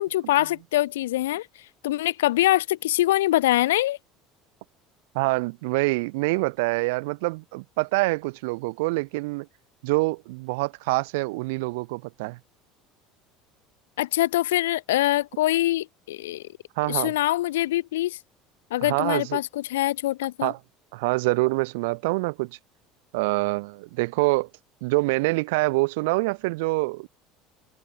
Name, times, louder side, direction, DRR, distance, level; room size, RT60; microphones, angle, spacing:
voice 1, 0.0-1.5 1.8-4.0 14.0-16.4 16.9-18.2 18.7-20.5, left 15 dB, 70° left, 0.5 m, -24 dB
voice 2, 5.1-9.5 9.8-12.4 16.8-17.1 18.8-19.4 20.4-20.6 20.9-22.6 23.1-24.5 24.8-27.1, right 25 dB, 65° right, 0.8 m, -25 dB
figure-of-eight pair, 65°, 0 cm